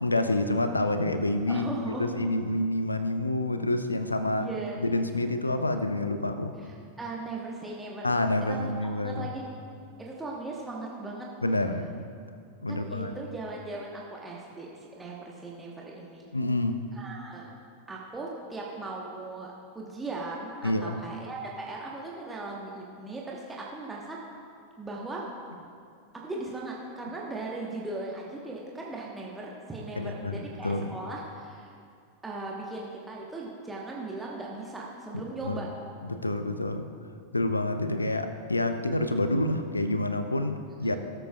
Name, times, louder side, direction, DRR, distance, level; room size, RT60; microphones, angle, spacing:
voice 1, 0.0-4.5 4.8-6.5 8.0-9.2 11.4-12.0 12.6-13.1 16.3-16.8 20.6-21.0 30.0-30.9 35.4-35.6 36.1-36.9 37.3-41.0, left 2 dB, 80° left, 9 dB, 0.6 m, -28 dB
voice 2, 1.5-2.1 4.4-4.8 6.6-8.1 8.5-8.7 9.0-9.5 10.0-11.3 12.7-16.2 16.9-17.5 17.9-19.5 19.7-24.2 24.8-25.2 26.1-31.7 32.2-35.7 40.8-41.0, right 2 dB, 10° right, -3 dB, 1.2 m, -38 dB
18.5 x 7.7 x 2.4 m, 2.4 s
figure-of-eight pair, 90°, 0 cm